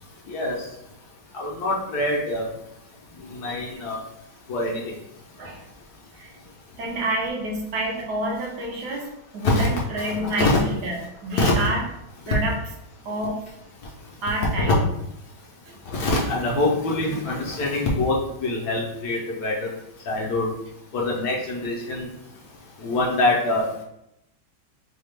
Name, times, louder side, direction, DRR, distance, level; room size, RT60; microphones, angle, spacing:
voice 1, 1.3-2.5 3.4-4.0 4.5-4.8 9.4-9.7 10.0-10.6 11.4-11.5 12.3-12.4 14.4-14.8 15.9-18.2 18.4-19.7 20.1-20.5 20.9-22.1 22.8-23.6, left 2 dB, 65° left, -3 dB, 1.1 m, -24 dB
voice 2, 6.8-11.8 12.3-12.5 13.0-13.3 14.2-14.8 15.7-15.8, right 1 dB, 65° right, -2 dB, 1.4 m, -28 dB
4.8 x 2.3 x 3.2 m, 0.83 s
omnidirectional pair, 2.0 m